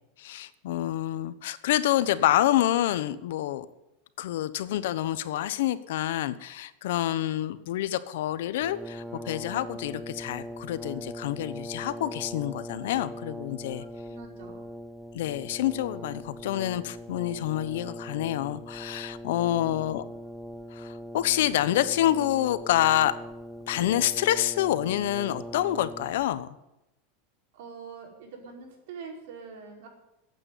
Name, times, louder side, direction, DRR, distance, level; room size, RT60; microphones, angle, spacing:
voice 1, 0.2-3.7 4.2-13.8 15.1-20.0 20.7-23.2 23.7-26.5, left 13 dB, 75° left, 14 dB, 1.0 m, -27 dB
Brass instrument, 8.6-26.4, equal, 5° right, 0.6 m, -41 dB
voice 2, 13.7-14.7 19.4-19.9 27.5-29.9, right 5 dB, 65° right, 1 dB, 4.9 m, -44 dB
14.5 x 9.0 x 9.5 m, 0.93 s
supercardioid pair, 160°, 0 cm